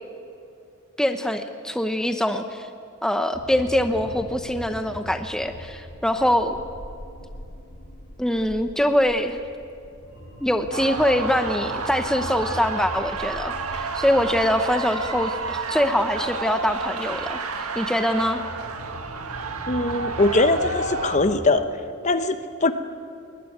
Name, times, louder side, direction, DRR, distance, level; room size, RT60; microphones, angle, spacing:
voice 1, 1.0-2.7 3.0-6.6 8.2-9.4 10.4-18.4, left 1 dB, 5° left, 7 dB, 0.8 m, -23 dB
sound 1, 3.3-21.5, equal, 60° left, 3.4 m, -41 dB
sound 2, 10.7-21.2, right 4 dB, 85° right, 1.7 m, -30 dB
voice 2, 19.7-21.6 22.0-22.7, left 2 dB, 35° left, 10 dB, 0.9 m, -21 dB
20.5 x 20.0 x 9.4 m, 2.5 s
head